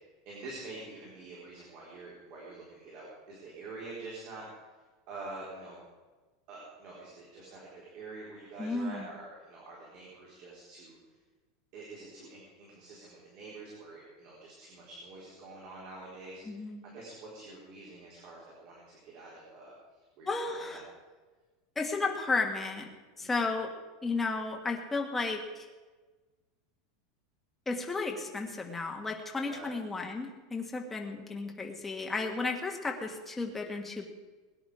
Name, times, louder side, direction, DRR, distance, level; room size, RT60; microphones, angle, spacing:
voice 1, 0.2-4.5 5.1-5.8 6.5-7.7 7.9-11.0 11.7-19.7 20.2-20.8 23.2-23.4 29.4-29.7, right 3 dB, 40° right, -5 dB, 4.2 m, -46 dB
voice 2, 8.6-9.1 16.4-16.8 20.3-20.8 21.7-22.9 23.2-23.7 24.0-25.7 27.6-34.1, left 3 dB, 5° left, 1 dB, 1.5 m, -33 dB
21.5 x 10.0 x 5.0 m, 1.3 s
supercardioid pair, 175°, 2 cm